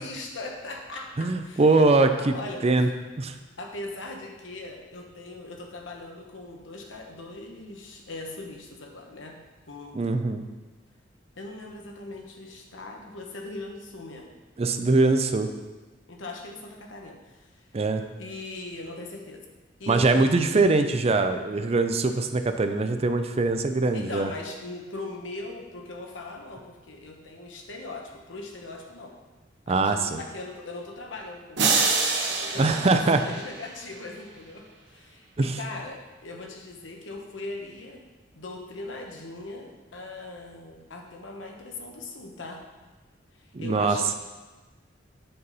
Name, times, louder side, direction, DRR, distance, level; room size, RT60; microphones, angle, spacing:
voice 1, 0.0-2.6 3.6-9.4 9.7-10.2 11.4-14.3 16.1-17.6 18.2-19.4 19.8-20.7 23.9-29.1 29.7-38.0 38.3-42.6 43.3-44.1, left 2 dB, 85° left, 2 dB, 1.1 m, -40 dB
voice 2, 1.2-2.3 2.6-2.9 3.2-3.3 9.9-10.5 14.6-15.5 17.7-18.0 19.9-24.3 29.7-30.2 32.6-33.2 35.4-35.6 43.5-44.0, right 3 dB, 35° right, 8 dB, 0.5 m, -22 dB
sound 1, 31.6-33.9, right 4 dB, 65° right, 1.1 m, -26 dB
7.8 x 5.7 x 4.1 m, 1.2 s
head